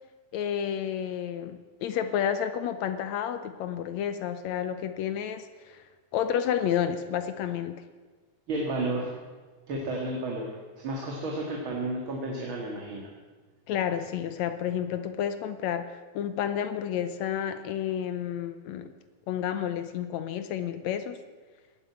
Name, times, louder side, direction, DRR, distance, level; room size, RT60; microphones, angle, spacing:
voice 1, 0.3-5.8 6.1-7.8 13.7-18.9 19.3-21.2, left 9 dB, 75° left, 11 dB, 1.9 m, -30 dB
voice 2, 8.5-9.1 9.7-10.6 10.8-13.1, right 2 dB, 45° right, -2 dB, 2.6 m, -32 dB
18.0 x 8.6 x 8.3 m, 1.4 s
omnidirectional pair, 3.5 m